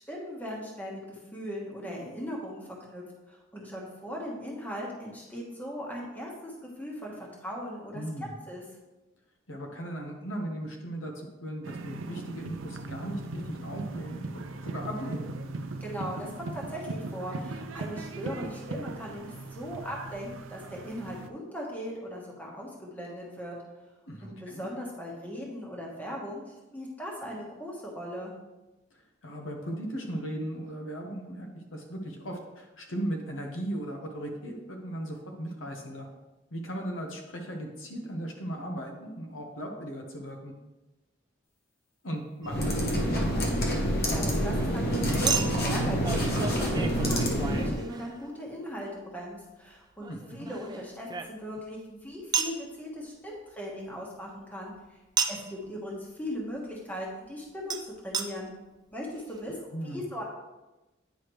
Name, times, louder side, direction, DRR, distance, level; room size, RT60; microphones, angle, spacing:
voice 1, 0.0-8.0 8.5-8.6 15.8-23.6 24.2-26.4 26.7-28.3 44.1-54.7 55.3-58.5 58.9-60.2, equal, 10° left, -2 dB, 1.2 m, -38 dB
voice 2, 7.9-8.3 9.5-15.3 24.1-24.7 29.2-36.1 36.5-40.5 42.0-43.4 50.1-50.5 59.7-60.1, right 1 dB, 85° left, 2 dB, 1.1 m, -37 dB
sound 1, 11.6-21.3, right 2 dB, 85° right, 0.5 m, -39 dB
sound 2, 42.4-47.8, equal, 50° left, 1.0 m, -27 dB
Chink clink, 42.4-42.6 45.3-48.4 50.0-51.7 52.3-52.6 55.2-55.6 57.7-57.8 58.1-58.3 58.9-59.0 59.2-59.3, right 6 dB, 20° right, 0.4 m, -32 dB
9.2 x 4.9 x 3.1 m, 1.1 s
head